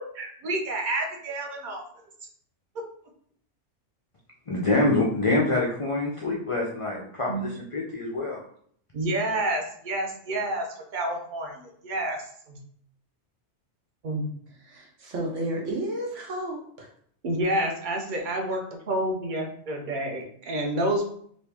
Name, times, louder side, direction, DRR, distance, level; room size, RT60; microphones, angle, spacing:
voice 1, 0.2-1.8 7.3-7.4 8.9-10.7 10.9-11.5 11.8-12.2 12.5-12.6 14.0-14.3 17.2-21.1, right 1 dB, 50° right, 2 dB, 0.7 m, -28 dB
voice 2, 4.5-8.4, left 2 dB, 55° left, -3 dB, 0.3 m, -25 dB
voice 3, 14.5-16.9, right 1 dB, 75° right, -1 dB, 1.2 m, -32 dB
3.1 x 2.7 x 3.4 m, 0.62 s
omnidirectional pair, 1.3 m